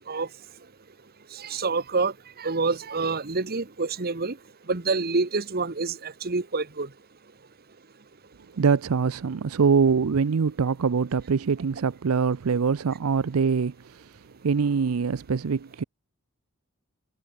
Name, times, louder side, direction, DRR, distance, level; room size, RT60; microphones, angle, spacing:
voice 1, 1.3-2.1 2.4-4.4 4.7-6.9, right 3 dB, 45° right, 1.2 m, -27 dB
voice 2, 8.6-14.0 14.4-15.8, right 5 dB, 70° right, 0.5 m, -24 dB
head